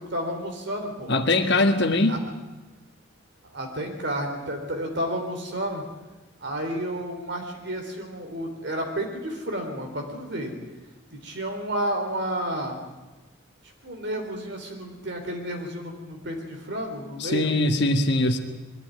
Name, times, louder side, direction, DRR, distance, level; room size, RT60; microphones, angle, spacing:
voice 1, 0.0-1.1 2.1-2.2 3.5-5.9 6.4-10.5 11.1-12.8 13.8-17.5, right 1 dB, 55° right, 3 dB, 3.6 m, -31 dB
voice 2, 1.1-2.1 17.2-18.4, left 2 dB, 55° left, 6 dB, 1.5 m, -21 dB
21.5 x 12.5 x 9.6 m, 1.1 s
head